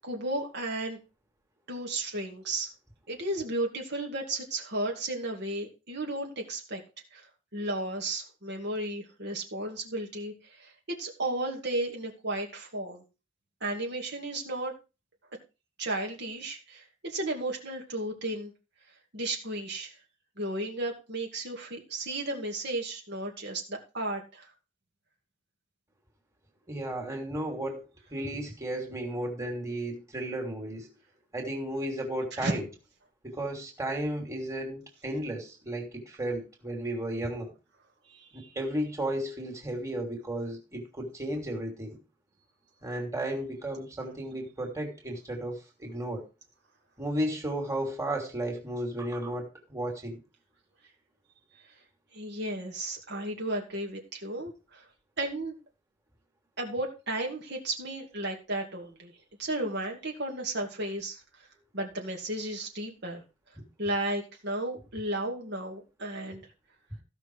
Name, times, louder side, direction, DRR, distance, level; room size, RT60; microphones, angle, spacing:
voice 1, 0.0-1.0 1.7-2.7 3.1-6.8 7.1-13.0 13.6-14.7 15.8-18.5 19.1-20.0 20.4-24.5 32.3-32.5 38.1-38.5 52.1-54.9 55.2-55.5 56.6-59.1 59.4-61.5 61.7-63.2 63.8-66.4, right 1 dB, 60° right, 1 dB, 2.4 m, -34 dB
voice 2, 26.7-27.8 28.1-30.9 31.3-32.6 33.2-37.5 38.3-42.0 42.8-46.2 47.0-50.2, right 1 dB, 15° right, 1 dB, 2.9 m, -34 dB
15.0 x 5.9 x 4.7 m, 0.30 s
head